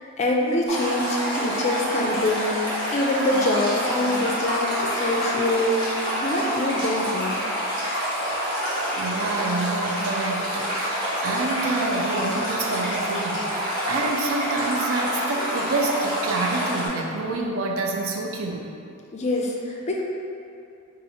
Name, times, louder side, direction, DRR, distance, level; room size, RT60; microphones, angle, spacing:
voice 1, 0.2-7.4 19.1-20.0, left 1 dB, 35° left, -1 dB, 0.4 m, -25 dB
Stream, 0.7-16.9, equal, 20° right, 1.1 m, -27 dB
voice 2, 8.9-18.7, right 3 dB, 75° right, 0 dB, 0.4 m, -28 dB
2.8 x 2.5 x 4.1 m, 2.5 s
head